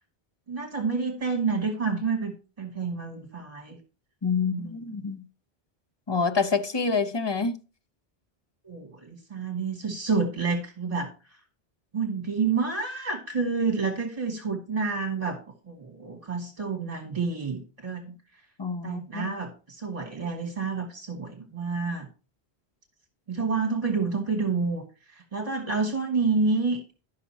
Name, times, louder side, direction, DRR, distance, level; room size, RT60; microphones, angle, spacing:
voice 1, 0.5-2.3 2.6-3.8 4.4-5.0 8.6-11.4 11.9-18.1 18.8-22.1 23.3-24.8 25.1-26.8, right 4 dB, 35° right, 1.7 m, -29 dB
voice 2, 4.2-5.2 6.1-7.6 18.6-19.3, left 5 dB, 30° left, 0.6 m, -27 dB
12.0 x 5.7 x 4.2 m
omnidirectional pair, 1.1 m